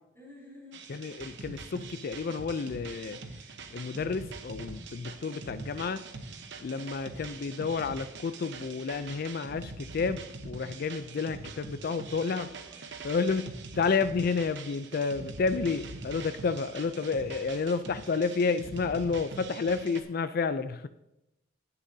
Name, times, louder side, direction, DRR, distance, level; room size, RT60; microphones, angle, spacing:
voice 1, 0.1-0.8 6.7-7.2 11.5-12.8 13.1-13.3, left 1 dB, 15° left, -4 dB, 3.4 m, -53 dB
sound 1, 0.7-20.0, right 3 dB, 65° right, 1.0 m, -43 dB
voice 2, 0.9-3.2 3.7-6.1 6.6-12.5 13.0-13.5 13.8-20.9, left 4 dB, 50° left, 11 dB, 0.4 m, -30 dB
17.0 x 6.9 x 2.7 m, 0.86 s
head